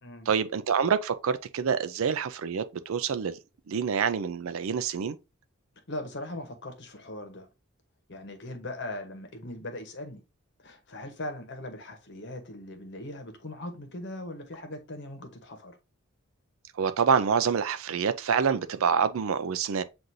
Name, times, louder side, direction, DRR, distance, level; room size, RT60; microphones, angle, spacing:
voice 1, 0.3-3.4 3.7-5.2 16.8-19.8, right 6 dB, 65° right, 0.4 m, -27 dB
voice 2, 5.9-7.5 8.1-10.2 10.6-15.8, left 1 dB, 50° left, 1.0 m, -40 dB
7.7 x 2.6 x 2.7 m
head